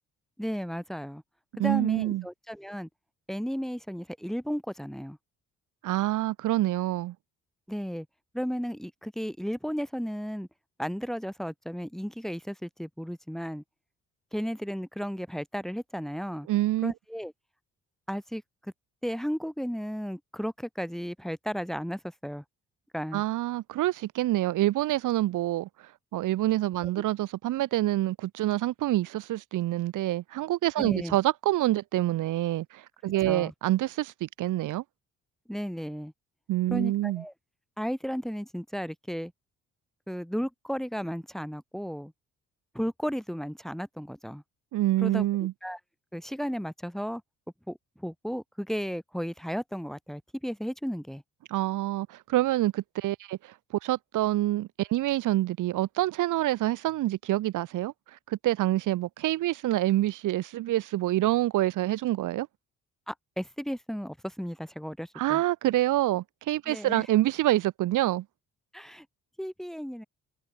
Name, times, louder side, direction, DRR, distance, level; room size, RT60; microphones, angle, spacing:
voice 1, 0.4-1.2 1.6-2.9 3.3-5.2 7.7-8.1 8.3-10.5 10.8-13.6 14.3-16.5 16.8-17.3 18.1-18.7 19.0-22.4 22.9-23.2 26.8-26.9 30.8-31.1 33.0-33.5 35.5-36.1 36.7-37.3 37.8-39.3 40.1-42.1 42.7-44.4 45.0-45.8 46.1-47.2 47.7-51.2 63.1-65.4 66.7-67.0 68.7-69.0 69.4-70.0, equal, ahead, 3.1 m, -34 dB
voice 2, 1.6-2.2 5.8-7.1 16.5-16.9 23.1-25.7 26.1-34.8 36.5-37.2 44.7-45.5 51.5-53.5 53.8-57.9 58.3-62.5 65.2-68.2, right 15 dB, 85° right, 4.3 m, -27 dB
cardioid pair, 90°, 30 cm